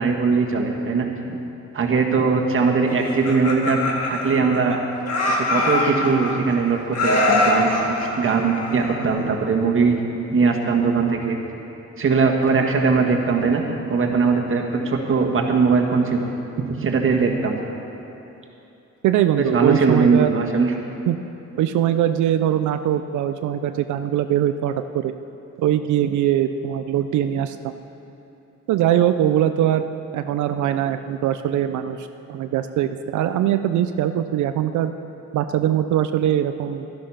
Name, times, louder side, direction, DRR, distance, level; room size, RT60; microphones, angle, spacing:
voice 1, 0.0-1.4 1.7-3.8 4.1-4.8 5.4-10.0 10.3-11.4 12.0-13.6 13.9-16.3 16.7-17.5 19.4-20.7, right 4 dB, 45° right, 2 dB, 1.7 m, -20 dB
Laughter, 3.1-4.7 5.1-6.5 6.9-9.2, left 2 dB, 55° left, 2.2 m, -23 dB
voice 2, 19.0-20.3 21.1-21.2 21.5-25.1 25.6-27.7 28.7-29.8 30.1-34.9 35.3-36.9, right 11 dB, 75° right, 9 dB, 0.5 m, -21 dB
12.5 x 11.5 x 5.7 m, 2.9 s
cardioid pair, 90°, 30 cm